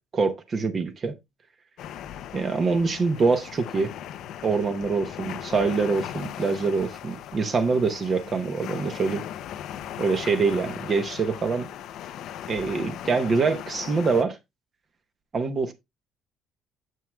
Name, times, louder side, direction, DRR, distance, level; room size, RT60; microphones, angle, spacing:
voice 1, 0.1-1.1 2.3-3.9 4.4-9.2 10.0-11.7 12.5-14.4 15.3-15.7, right 4 dB, 25° right, 0.8 m, -25 dB
sound 1, 1.8-14.2, left 10 dB, 55° left, 0.5 m, -38 dB
9.2 x 7.3 x 2.2 m
cardioid pair, 175°, 0 cm